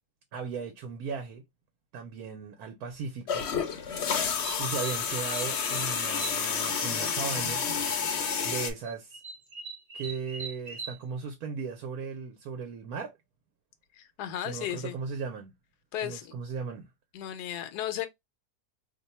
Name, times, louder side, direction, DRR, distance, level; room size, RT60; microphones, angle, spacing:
voice 1, 0.3-1.4 1.9-3.5 4.6-7.6 8.4-9.2 9.9-13.1 14.4-15.5 16.0-16.9, right 5 dB, 70° right, 1.1 m, -37 dB
sound 1, 3.3-8.7, left 6 dB, 60° left, 0.7 m, -30 dB
sound 2, 3.9-7.1 7.4-8.0 8.2-11.0, right 4 dB, 45° right, 0.9 m, -43 dB
voice 2, 14.0-15.0 15.9-16.3 17.1-18.1, left 11 dB, 80° left, 1.2 m, -35 dB
2.8 x 2.2 x 4.1 m
omnidirectional pair, 1.7 m